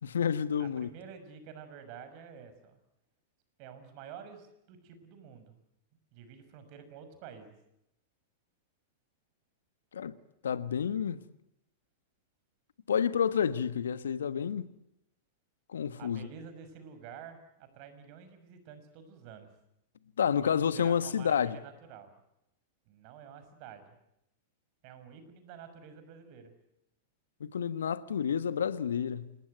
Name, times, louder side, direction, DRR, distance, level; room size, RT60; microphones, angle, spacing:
voice 1, 0.0-0.9 9.9-10.1 10.4-11.2 12.9-14.6 15.7-16.3 20.2-21.6 27.4-29.4, left 7 dB, 75° left, 1.3 m, -29 dB
voice 2, 0.6-2.8 3.6-5.6 6.1-7.6 16.0-19.5 20.4-22.1 22.9-24.0 24.8-26.5, right 7 dB, 50° right, 6.1 m, -49 dB
27.5 x 20.0 x 8.1 m
figure-of-eight pair, 95°, 0 cm